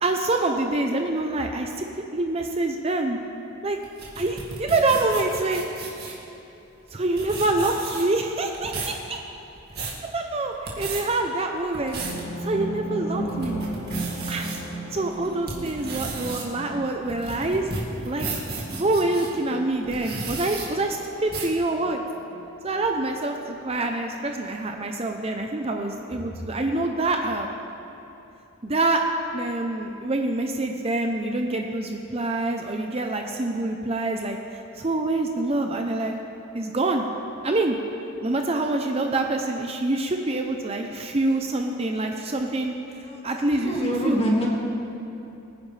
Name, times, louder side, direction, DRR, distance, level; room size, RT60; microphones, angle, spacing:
voice 1, 0.0-1.9 2.1-3.2 3.6-3.8 4.2-5.6 6.9-9.2 10.1-12.0 12.4-13.6 14.3-14.5 14.9-17.7 18.0-18.3 18.7-22.0 22.6-27.5 28.6-29.0 29.3-34.4 34.8-36.1 36.5-37.1 37.4-37.8 38.2-42.7 43.2-44.2, right 2 dB, 30° right, 3 dB, 0.6 m, -26 dB
sound 1, 3.8-6.2 6.9-7.0 7.2-8.2 8.5-9.0 9.5-10.0 10.5-11.0 11.6-12.2 12.7-12.8 13.3-14.6 15.1-19.3 19.8-20.7 21.3-21.6, right 3 dB, 50° right, 2.2 m, -34 dB
sound 2, 12.0-22.5 22.7-22.8 23.1-23.2, right 1 dB, 80° left, 2.5 m, -36 dB
voice 2, 43.0-44.6, equal, 30° left, -3 dB, 2.1 m, -26 dB
23.5 x 10.0 x 3.4 m, 2.9 s
head